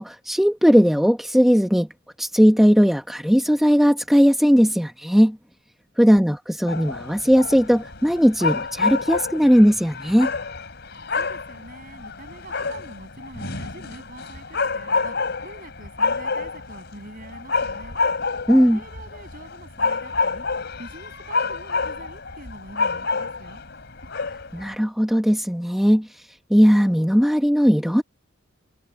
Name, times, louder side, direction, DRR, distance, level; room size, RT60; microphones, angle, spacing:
voice 1, 0.0-1.9 2.2-5.4 6.0-10.3 18.5-18.8 24.5-26.2 26.5-28.0, equal, ahead, 1.0 m, -18 dB
sound 1, 6.7-24.7, left 4 dB, 55° left, 3.9 m, -28 dB
voice 2, 11.1-18.0 18.7-23.6, right 1 dB, 45° right, 7.0 m, -44 dB
head